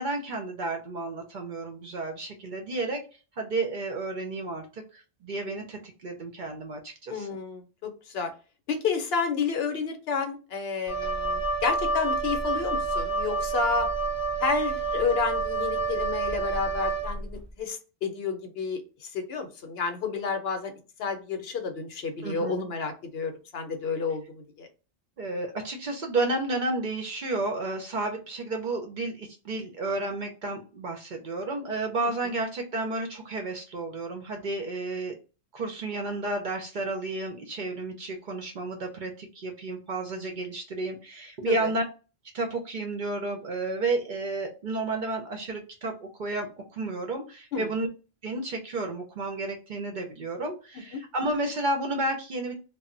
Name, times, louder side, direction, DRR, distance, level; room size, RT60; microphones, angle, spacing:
voice 1, 0.0-3.0 3.4-7.3 22.2-22.7 25.2-35.1 35.5-41.8 42.3-47.9 48.2-52.5, right 2 dB, 55° right, 3 dB, 0.6 m, -32 dB
voice 2, 7.1-8.3 8.7-13.9 14.4-20.7 21.0-24.7 41.5-41.7 47.5-47.7 50.9-51.0, left 5 dB, 65° left, 6 dB, 0.8 m, -30 dB
Wind instrument woodwind instrument, 10.9-17.4, right 3 dB, 15° right, 0.7 m, -28 dB
2.1 x 2.0 x 3.7 m, 0.34 s
omnidirectional pair, 1.2 m